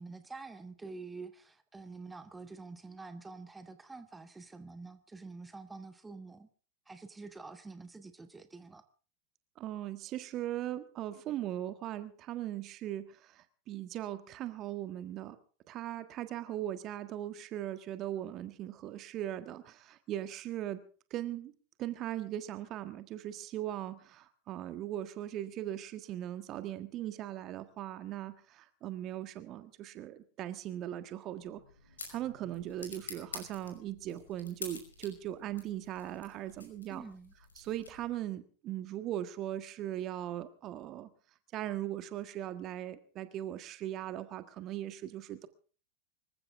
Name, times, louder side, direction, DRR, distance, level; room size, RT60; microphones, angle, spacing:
voice 1, 0.0-6.5 6.9-8.8 36.9-37.3, right 3 dB, 10° right, 10 dB, 1.4 m, -47 dB
voice 2, 9.6-15.4 15.7-20.8 21.1-21.5 21.8-31.6 32.1-37.0 37.6-41.1 41.5-45.5, right 12 dB, 35° right, 11 dB, 1.5 m, -39 dB
sound 1, 31.4-38.3, left 3 dB, 75° left, 5.6 m, -49 dB
25.5 x 15.0 x 3.6 m, 0.40 s
figure-of-eight pair, 90°, 0 cm